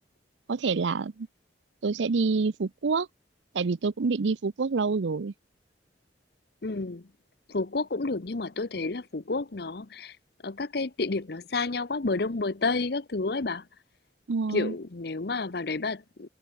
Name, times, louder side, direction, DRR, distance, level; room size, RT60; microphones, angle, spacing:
voice 1, 0.5-1.3 1.8-3.1 3.5-5.3 14.3-14.7, right 4 dB, 80° right, 0.6 m, -27 dB
voice 2, 6.6-7.1 7.5-10.2 10.4-13.7 14.5-16.3, left 3 dB, 60° left, 0.8 m, -30 dB
head